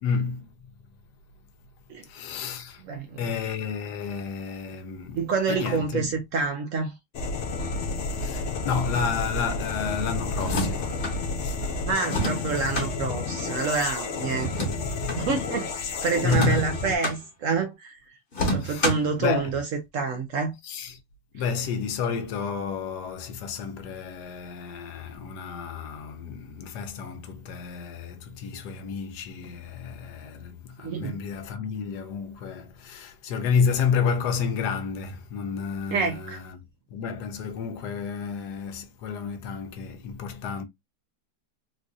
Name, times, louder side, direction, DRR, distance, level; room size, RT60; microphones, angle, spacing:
voice 1, 0.0-0.5 2.1-2.8 3.2-6.2 8.1-12.5 16.2-16.7 18.6-18.9 19.2-19.6 20.6-21.0 21.3-36.6 36.9-40.6, left 6 dB, 75° left, 1.2 m, -30 dB
voice 2, 2.9-3.3 5.2-6.9 11.8-14.7 15.1-18.0 18.5-19.6 19.9-20.5 30.8-31.2 35.9-36.4, right 5 dB, 65° right, 0.8 m, -27 dB
sound 1, 7.1-17.0, left 4 dB, 60° left, 0.7 m, -31 dB
sound 2, 10.3-11.2 12.0-12.9 14.4-15.2 16.2-17.2 18.3-19.1, equal, 40° left, 1.0 m, -28 dB
3.9 x 2.5 x 2.5 m
omnidirectional pair, 1.8 m